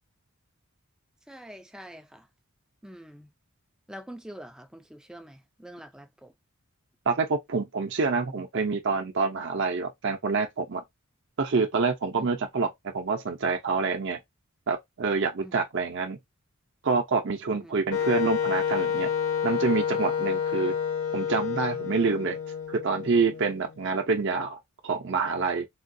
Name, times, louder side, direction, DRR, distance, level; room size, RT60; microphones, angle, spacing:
voice 1, 1.3-2.3 2.8-3.3 3.9-6.3 12.2-12.3 15.4-15.6 17.5-17.7, equal, 5° right, 0.3 m, -45 dB
voice 2, 7.1-10.8 11.4-14.2 14.7-16.2 16.8-19.1 19.4-20.7 21.1-22.4 22.7-24.6 24.8-25.7, right 4 dB, 55° right, 0.5 m, -27 dB
Wind instrument woodwind instrument, 17.9-23.7, left 7 dB, 70° left, 1.0 m, -29 dB
3.6 x 2.3 x 2.6 m
head